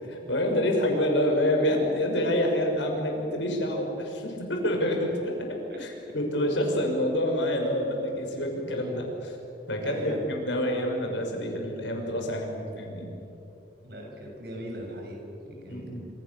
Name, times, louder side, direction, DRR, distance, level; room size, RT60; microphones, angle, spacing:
voice 1, 0.3-9.4 9.7-13.1 15.7-16.0, left 1 dB, 90° left, 2 dB, 5.9 m, -27 dB
voice 2, 9.8-10.3 13.8-15.2 15.5-15.9, equal, 55° right, 0 dB, 7.0 m, -39 dB
27.5 x 27.0 x 7.0 m, 2.8 s
head